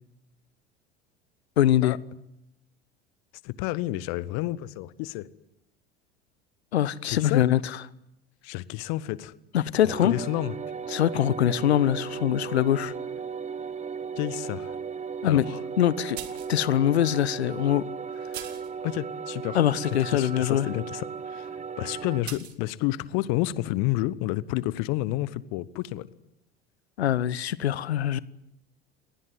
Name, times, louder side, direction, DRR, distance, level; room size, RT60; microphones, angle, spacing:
voice 1, 1.6-2.0 6.7-7.8 9.5-10.2 10.9-12.9 15.2-15.5 15.8-16.2 16.5-17.8 19.5-20.7 27.0-28.2, left 11 dB, 75° left, 0.9 m, -23 dB
voice 2, 3.4-5.3 7.1-7.4 8.4-9.3 9.8-10.6 14.2-14.8 15.2-15.6 18.8-19.6 19.9-26.1, left 16 dB, 55° left, 1.2 m, -30 dB
sound 1, 9.9-22.2, right 6 dB, 20° right, 1.2 m, -36 dB
sound 2, 16.2-16.6 17.4-17.5 18.3-18.7 22.3-22.6, right 10 dB, 75° right, 2.1 m, -39 dB
28.5 x 19.0 x 9.5 m
figure-of-eight pair, 75°, 33 cm